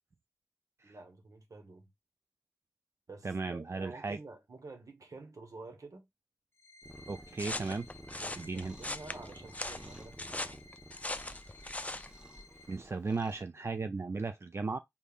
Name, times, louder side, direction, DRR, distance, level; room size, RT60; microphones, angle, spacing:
voice 1, 0.8-1.9 3.1-6.1 8.1-10.6, right 3 dB, 85° right, 1.1 m, -49 dB
voice 2, 3.2-4.2 7.1-7.9 8.4-8.8 12.7-14.8, right 4 dB, 50° right, 0.3 m, -36 dB
sound 1, 6.5-12.8, left 2 dB, 55° left, 0.7 m, -57 dB
Cat, 6.8-13.4, right 1 dB, 15° right, 1.1 m, -52 dB
sound 2, 7.4-12.1, left 2 dB, 25° left, 0.4 m, -39 dB
5.3 x 3.4 x 2.4 m
wide cardioid pair, 60°, 6 cm